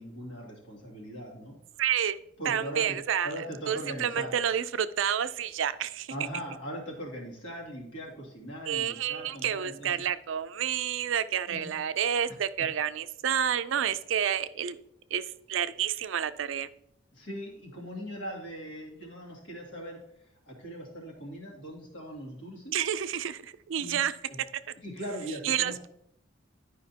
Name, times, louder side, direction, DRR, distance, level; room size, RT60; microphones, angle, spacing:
voice 1, 0.0-1.5 2.4-3.0 3.2-4.3 6.1-9.9 11.5-11.7 17.1-22.8 23.8-24.0 24.3-24.4 24.8-25.8, equal, 70° left, -2 dB, 2.4 m, -40 dB
voice 2, 1.8-2.2 2.5-3.3 3.7-6.1 8.7-14.8 15.1-16.7 22.7-24.1 25.4-25.9, right 9 dB, 75° right, 13 dB, 0.4 m, -29 dB
11.0 x 5.1 x 2.8 m, 0.74 s
head